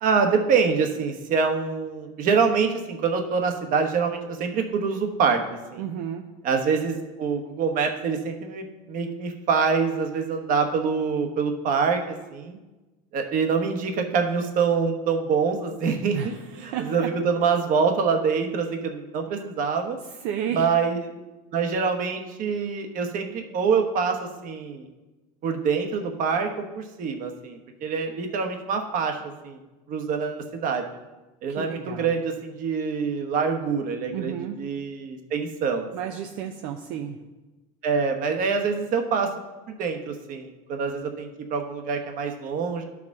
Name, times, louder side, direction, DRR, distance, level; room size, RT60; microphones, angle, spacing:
voice 1, 0.0-5.4 5.7-5.8 6.4-12.6 13.1-20.0 20.5-21.1 21.5-24.9 25.4-26.5 26.7-29.6 29.9-30.8 31.4-35.9 37.8-39.3 39.7-42.8, right 5 dB, 50° right, 5 dB, 1.1 m, -25 dB
voice 2, 5.8-6.2 16.1-17.1 20.2-20.7 31.6-32.1 34.1-34.5 35.9-37.2, right 9 dB, 70° right, 4 dB, 0.6 m, -32 dB
13.0 x 4.8 x 3.6 m, 1.1 s
supercardioid pair, 125°, 18 cm